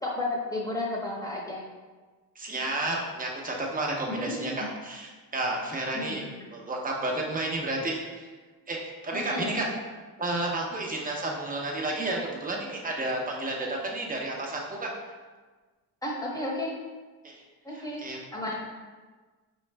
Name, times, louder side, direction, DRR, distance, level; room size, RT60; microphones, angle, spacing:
voice 1, 0.0-1.6 4.1-4.5 5.9-6.3 9.1-9.6 16.0-16.8 17.6-18.0 18.3-18.6, left 2 dB, 10° left, -3 dB, 1.0 m, -32 dB
voice 2, 2.4-6.2 6.5-8.3 8.7-9.7 10.2-14.9 17.2-17.4 17.7-18.2, right 2 dB, 20° right, -1 dB, 0.8 m, -31 dB
5.2 x 3.1 x 3.3 m, 1.3 s
cardioid pair, 120°, 38 cm